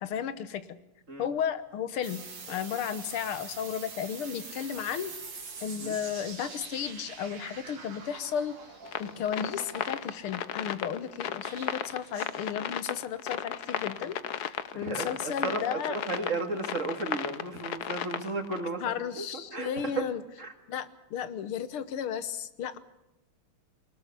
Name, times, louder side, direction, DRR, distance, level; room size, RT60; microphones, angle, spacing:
voice 1, 0.0-0.8 1.2-5.1 5.6-8.5 9.0-14.2 14.5-16.0 18.8-20.2 20.7-22.8, left 8 dB, 80° left, 13 dB, 2.0 m, -34 dB
sound 1, 2.0-10.4 11.4-12.5, right 4 dB, 55° right, 3.1 m, -45 dB
sound 2, 8.9-18.6, left 9 dB, 55° left, 1.2 m, -35 dB
voice 2, 14.7-20.1 20.4-20.5, right 3 dB, 35° right, 6 dB, 2.4 m, -34 dB
24.0 x 19.5 x 6.8 m, 0.91 s
omnidirectional pair, 2.4 m